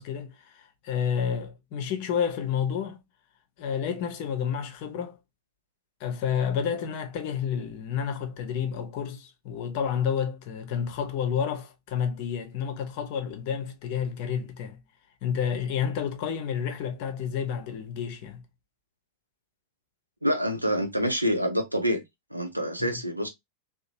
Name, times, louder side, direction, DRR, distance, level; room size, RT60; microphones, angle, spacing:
voice 1, 0.0-3.0 3.6-5.2 6.0-14.8 15.2-18.4 22.9-23.0, left 7 dB, 45° left, 0.6 m, -30 dB
voice 2, 20.2-22.0 22.3-23.3, equal, 85° right, 0.5 m, -26 dB
2.9 x 2.0 x 2.7 m
figure-of-eight pair, 90°, 0 cm